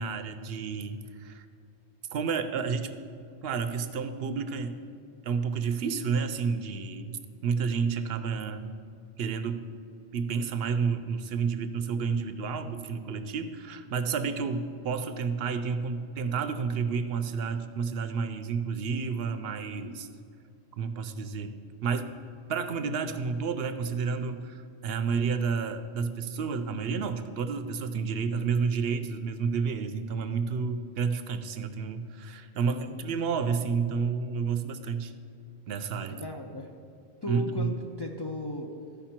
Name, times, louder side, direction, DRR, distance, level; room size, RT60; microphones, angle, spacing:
voice 1, 0.0-1.4 2.1-2.9 3.4-4.7 5.2-8.7 9.2-9.6 10.1-20.1 20.8-21.5 21.8-22.1 22.5-35.1 35.7-36.2 37.3-37.7, right 5 dB, 70° right, 10 dB, 0.8 m, -30 dB
voice 2, 32.7-33.0 36.2-36.7 37.2-38.8, left 1 dB, 35° left, 1 dB, 0.4 m, -36 dB
13.5 x 5.2 x 4.4 m, 2.5 s
omnidirectional pair, 1.1 m